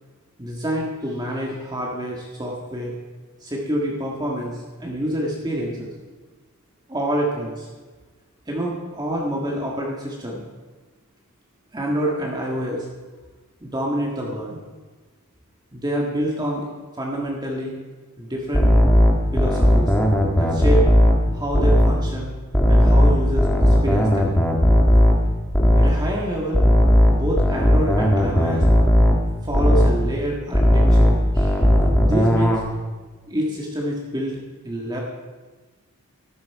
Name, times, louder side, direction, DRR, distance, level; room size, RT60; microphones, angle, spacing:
voice 1, 0.4-2.9 3.4-5.9 6.9-7.7 8.5-10.4 11.7-12.9 13.6-14.6 15.7-16.7 17.0-17.8 18.2-18.8 19.3-19.9 20.4-20.8 21.3-22.3 22.7-24.4 25.7-26.6 27.1-28.6 29.4-31.6 32.0-32.6 33.3-34.4 34.6-35.0, equal, 20° right, -3 dB, 1.7 m, -27 dB
sound 1, 18.5-22.0 22.5-26.1 26.5-30.1 30.5-32.6, equal, 5° left, 1.6 m, -16 dB
14.0 x 12.0 x 4.7 m, 1.3 s
head